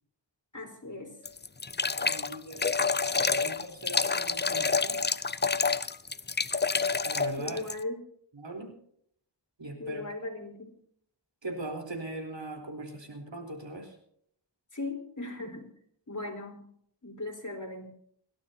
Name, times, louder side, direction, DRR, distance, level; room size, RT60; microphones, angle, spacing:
voice 1, 0.5-1.2 7.4-8.1 9.8-10.8 14.7-15.7 16.1-16.7 17.0-17.9, left 2 dB, 45° left, 2 dB, 4.1 m, -38 dB
sound 1, 1.3-7.8, left 4 dB, 25° left, 0.5 m, -28 dB
voice 2, 2.0-2.8 3.2-5.0 7.0-7.6 8.4-8.7 9.6-10.0 11.4-13.9, right 2 dB, 85° right, 3 dB, 4.0 m, -40 dB
29.5 x 12.5 x 2.8 m, 0.67 s
wide cardioid pair, 60°, 44 cm